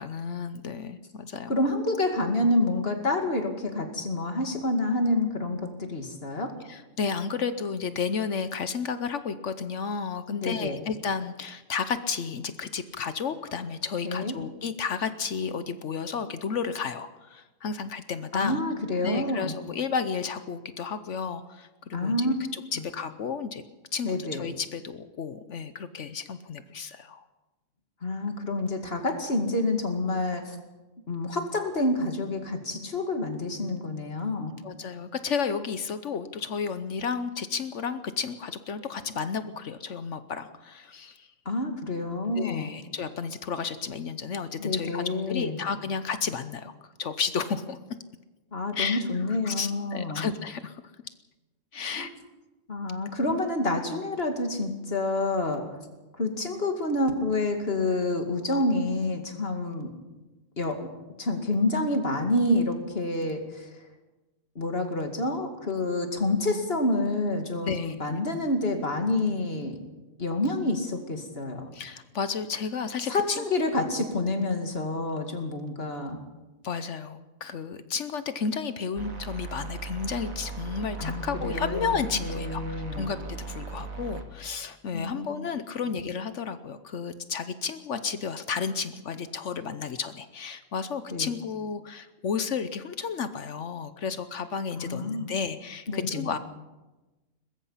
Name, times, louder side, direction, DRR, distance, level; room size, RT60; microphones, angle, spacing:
voice 1, 0.0-1.6 6.7-18.6 19.0-23.6 23.9-27.2 34.6-41.3 42.4-46.7 47.0-47.8 48.7-49.0 49.4-50.8 51.7-52.1 53.2-53.3 67.6-68.2 71.7-73.4 76.6-96.4, left 6 dB, 65° left, 11 dB, 1.2 m, -32 dB
voice 2, 1.5-6.5 10.3-10.8 14.0-14.3 18.3-19.6 21.9-22.3 22.8-22.9 24.0-24.5 28.0-30.6 31.1-34.5 41.5-42.7 44.6-45.6 48.5-50.3 52.0-52.1 52.7-55.7 56.1-59.9 60.6-60.8 61.2-63.7 64.6-69.8 70.2-71.7 73.1-76.2 81.0-83.1 84.9-85.3 91.1-91.3 94.8-95.3 95.9-96.3, left 2 dB, 45° left, 4 dB, 2.6 m, -28 dB
sound 1, 79.0-84.2, right 4 dB, 90° right, 2.3 m, -38 dB
22.0 x 20.5 x 5.7 m, 1.1 s
omnidirectional pair, 1.4 m